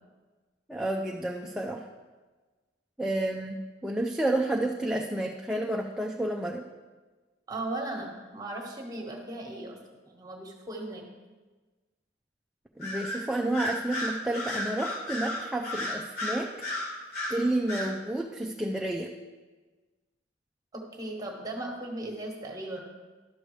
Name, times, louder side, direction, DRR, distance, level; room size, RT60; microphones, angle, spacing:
voice 1, 0.7-1.8 3.0-6.7 12.8-16.5 16.9-17.0 17.3-19.1, right 1 dB, 5° right, 0 dB, 0.4 m, -30 dB
voice 2, 7.5-9.8 10.0-11.0 20.7-22.8, right 2 dB, 20° right, 1 dB, 1.3 m, -37 dB
Bird vocalization bird call bird song, 12.8-13.2 13.5-17.4 17.7-17.9, left 1 dB, 60° left, 2.1 m, -33 dB
11.5 x 6.7 x 3.2 m, 1.3 s
head